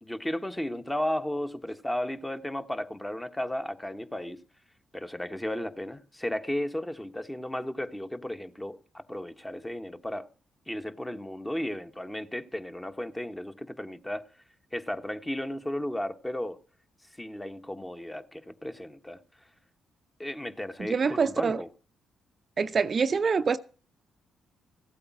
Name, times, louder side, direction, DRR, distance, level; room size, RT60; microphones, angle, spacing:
voice 1, 0.0-4.4 4.9-10.3 10.7-14.3 14.7-16.6 17.2-19.2 20.2-21.7, left 1 dB, 10° left, 1.3 m, -34 dB
voice 2, 20.8-21.6 22.6-23.6, right 5 dB, 45° right, 0.6 m, -25 dB
15.5 x 8.6 x 6.0 m
hypercardioid pair, 50°, 0 cm